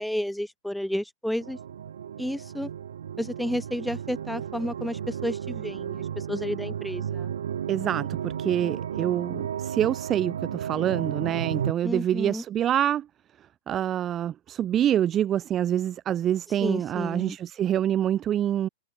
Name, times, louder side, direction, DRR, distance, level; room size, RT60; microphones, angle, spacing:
voice 1, 0.0-1.6 2.2-2.7 3.2-7.3 11.8-12.4 16.6-17.4, equal, ahead, 3.1 m, -31 dB
sound 1, 1.4-11.7, right 9 dB, 75° right, 1.0 m, -33 dB
voice 2, 7.7-13.1 13.7-18.7, right 10 dB, 30° right, 0.4 m, -26 dB
hypercardioid pair, 110°, 0 cm